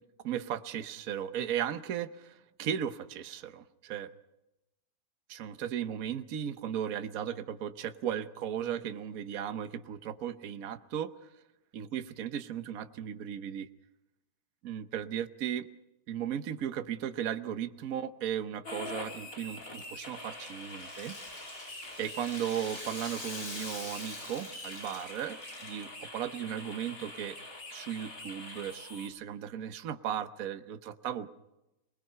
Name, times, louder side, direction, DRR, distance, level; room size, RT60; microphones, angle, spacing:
voice 1, 0.2-4.1 5.3-11.1 11.7-13.7 14.6-15.7 16.1-21.1 22.0-27.4 27.7-31.3, right 9 dB, 60° right, 10 dB, 1.3 m, -36 dB
sound 1, 18.6-29.1, left 2 dB, 55° left, 4.4 m, -45 dB
Rattle (instrument), 19.6-25.8, left 2 dB, 80° left, 6.0 m, -45 dB
26.0 x 20.0 x 5.7 m, 0.92 s
omnidirectional pair, 1.8 m